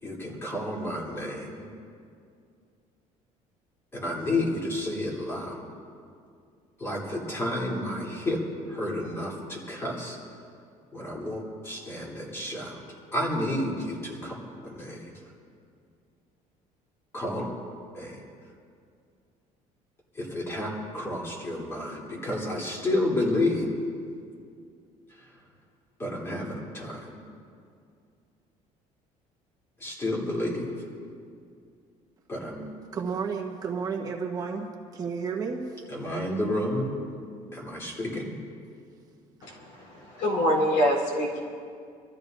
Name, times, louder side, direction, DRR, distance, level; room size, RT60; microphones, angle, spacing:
voice 1, 0.0-1.7 3.9-5.6 6.8-10.2 10.9-12.8 13.1-14.4 14.6-15.2 17.1-17.5 17.9-18.2 20.1-23.7 25.1-25.4 26.0-27.2 29.8-30.9 32.3-32.7 35.9-37.0 37.5-38.3, left 1 dB, 20° left, -4 dB, 3.4 m, -31 dB
voice 2, 32.9-35.8, right 5 dB, 25° right, -1 dB, 1.4 m, -32 dB
voice 3, 39.4-41.4, equal, 80° left, -3 dB, 4.1 m, -25 dB
27.5 x 14.0 x 2.7 m, 2.3 s
cardioid pair, 165°, 14 cm